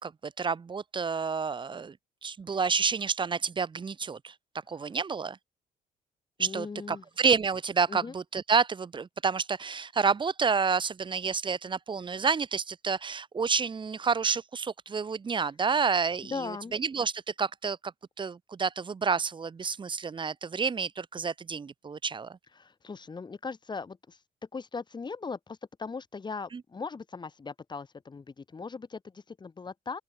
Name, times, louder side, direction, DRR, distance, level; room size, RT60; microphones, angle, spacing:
voice 1, 0.0-2.0 2.2-4.3 4.7-5.4 6.4-17.9 18.2-22.4 26.5-26.6, right 5 dB, 30° right, 1.9 m, -29 dB
voice 2, 6.4-7.0 7.9-8.1 16.3-16.8 22.6-24.2 24.5-30.0, left 4 dB, 25° left, 4.4 m, -39 dB
open air
cardioid pair, 110°, 17 cm